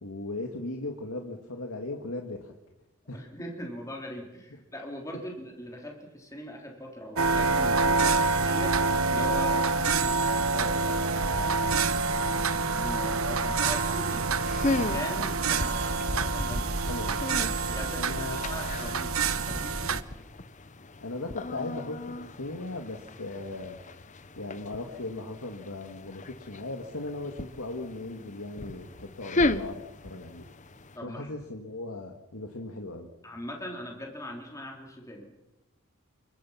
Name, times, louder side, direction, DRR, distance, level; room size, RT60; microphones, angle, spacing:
voice 1, 0.0-2.5 3.1-3.3 16.7-17.2 17.9-18.4 21.0-23.8 24.4-30.5 31.0-33.1, left 2 dB, 80° left, 2 dB, 2.2 m, -38 dB
voice 2, 3.1-11.8 12.2-16.7 17.7-20.0 31.0-31.3 33.2-35.3, left 1 dB, 15° left, 0 dB, 3.8 m, -41 dB
sound 1, 7.2-20.0, right 4 dB, 75° right, 1.1 m, -27 dB
sound 2, 14.3-31.0, left 2 dB, 35° left, 0.9 m, -36 dB
29.0 x 24.0 x 5.9 m, 1.0 s
head